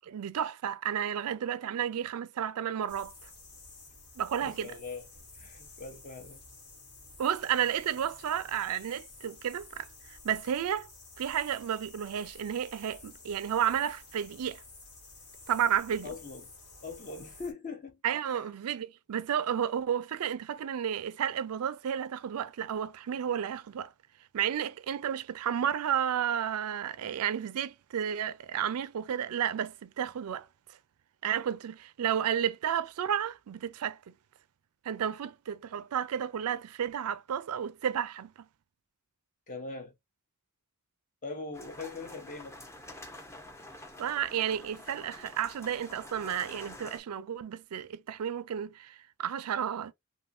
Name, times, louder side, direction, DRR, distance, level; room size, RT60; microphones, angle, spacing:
voice 1, 0.0-3.3 4.2-4.7 7.2-10.9 11.2-14.6 15.5-16.1 18.0-23.9 24.3-30.5 31.2-34.1 34.8-38.3 44.0-49.9, right 9 dB, 85° right, 0.4 m, -32 dB
sound 1, 2.9-17.5, left 3 dB, 80° left, 1.6 m, -52 dB
voice 2, 4.4-6.4 16.0-16.5 16.8-18.4 39.5-39.9 41.2-42.6, left 3 dB, 35° left, 0.9 m, -42 dB
sound 2, 41.5-47.0, left 1 dB, 10° left, 0.6 m, -48 dB
3.5 x 2.6 x 2.5 m
head